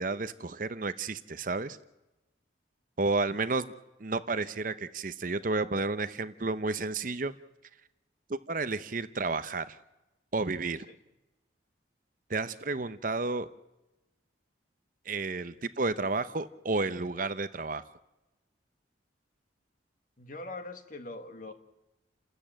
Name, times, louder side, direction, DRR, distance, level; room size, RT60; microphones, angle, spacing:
voice 1, 0.0-1.8 3.0-3.7 4.0-7.3 8.3-9.8 10.3-10.9 12.3-13.5 15.1-17.8, right 3 dB, 45° right, 13 dB, 0.8 m, -31 dB
voice 2, 20.2-21.5, left 2 dB, 45° left, 8 dB, 1.7 m, -42 dB
29.5 x 13.5 x 8.9 m, 1.0 s
head